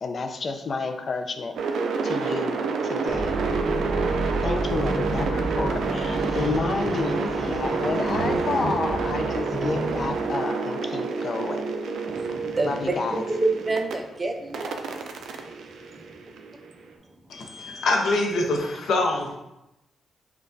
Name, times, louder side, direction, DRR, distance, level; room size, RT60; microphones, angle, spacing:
voice 1, 0.0-1.6 2.0-3.4 4.4-11.6 12.6-13.2, left 4 dB, 50° left, 6 dB, 0.4 m, -30 dB
sound 1, 1.6-13.9 14.5-16.7, right 4 dB, 80° right, 0.4 m, -28 dB
sound 2, 3.1-10.3, right 1 dB, 25° left, 1.3 m, -31 dB
voice 2, 12.1-14.8 15.2-15.3, right 2 dB, 25° right, 4 dB, 0.5 m, -28 dB
voice 3, 17.3-19.4, left 2 dB, 80° left, 0 dB, 0.7 m, -24 dB
5.7 x 2.3 x 2.6 m, 0.91 s
cardioid pair, 90°, 0 cm